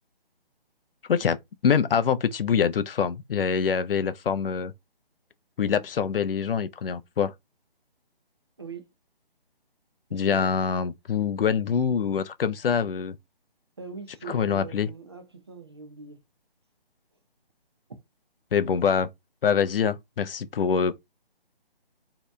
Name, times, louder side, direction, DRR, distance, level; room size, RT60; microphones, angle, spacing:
voice 1, 1.6-4.7 5.6-7.3 10.1-13.1 14.3-14.9 18.5-19.1 19.4-20.9, left 7 dB, 65° left, 0.5 m, -25 dB
voice 2, 10.1-10.5 13.8-16.2, right 4 dB, 25° right, 0.4 m, -41 dB
2.7 x 2.2 x 3.2 m
figure-of-eight pair, 155°, 30 cm